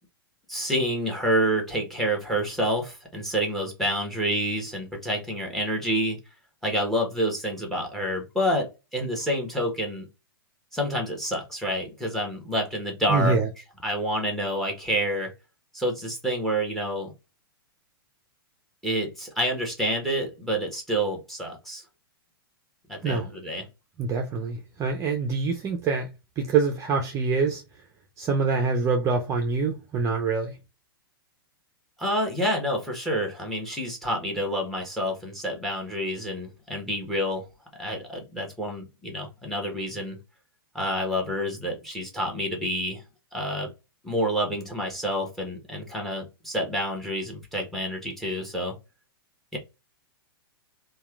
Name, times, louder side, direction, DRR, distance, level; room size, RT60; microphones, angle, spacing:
voice 1, 0.5-6.2 6.6-10.0 10.7-13.4 13.8-15.3 15.7-17.1 18.8-21.8 22.9-23.6 32.0-37.4 37.8-40.2 40.7-43.0 43.3-43.7 44.0-48.8 49.5-49.6, equal, ahead, 1.0 m, -28 dB
voice 2, 13.1-13.5 23.0-23.3 24.0-26.1 26.4-27.6 28.2-30.6, right 4 dB, 25° right, 0.5 m, -25 dB
2.9 x 2.2 x 2.3 m
hypercardioid pair, 120°, 13 cm